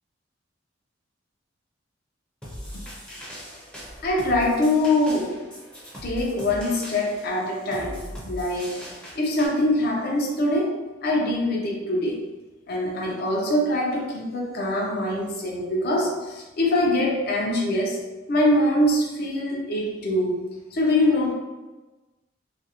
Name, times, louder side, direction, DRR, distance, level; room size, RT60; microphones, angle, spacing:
sound 1, 2.4-9.5, equal, 5° left, 0.5 m, -40 dB
voice 1, 4.0-5.4 6.0-8.8 9.2-12.3 12.7-18.0 18.3-20.4 20.7-21.3, left 1 dB, 55° left, -1 dB, 0.5 m, -23 dB
2.4 x 2.0 x 2.8 m, 1.2 s
head